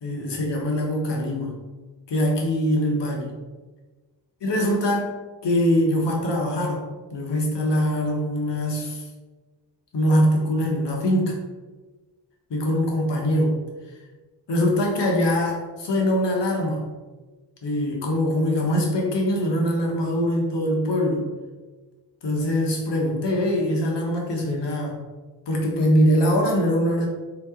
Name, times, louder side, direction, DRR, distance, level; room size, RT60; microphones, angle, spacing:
voice 1, 0.0-1.5 2.1-3.3 4.4-5.1 5.4-6.8 7.1-9.0 9.9-11.4 12.5-13.6 14.5-16.9 17.6-21.3 22.2-25.0 25.5-27.1, equal, 70° left, 0 dB, 1.1 m, -23 dB
3.9 x 3.0 x 3.6 m, 1.3 s
wide cardioid pair, 115°, 44 cm